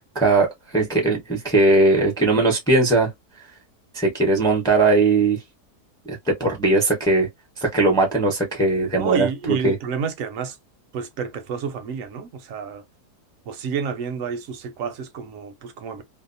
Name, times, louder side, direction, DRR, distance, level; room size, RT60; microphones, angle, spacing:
voice 1, 0.0-3.1 3.9-5.4 6.1-7.3 7.6-9.8, right 2 dB, 5° left, 0.6 m, -19 dB
voice 2, 9.0-10.6 10.9-12.8 13.5-16.0, right 6 dB, 65° right, 0.9 m, -29 dB
2.7 x 2.1 x 2.5 m
omnidirectional pair, 1.7 m